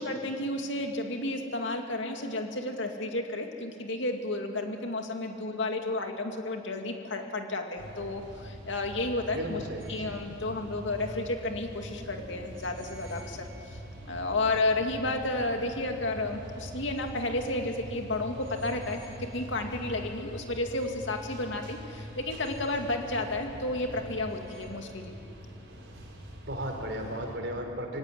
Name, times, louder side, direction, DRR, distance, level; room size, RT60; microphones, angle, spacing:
voice 1, 0.0-9.6 9.9-13.5 14.1-25.1, left 2 dB, 75° left, 4 dB, 2.3 m, -32 dB
sound 1, 7.8-27.4, equal, 85° right, 5.0 m, -44 dB
voice 2, 9.3-10.2 26.5-28.0, equal, 65° right, 3 dB, 3.7 m, -35 dB
23.5 x 17.0 x 9.9 m, 2.6 s
head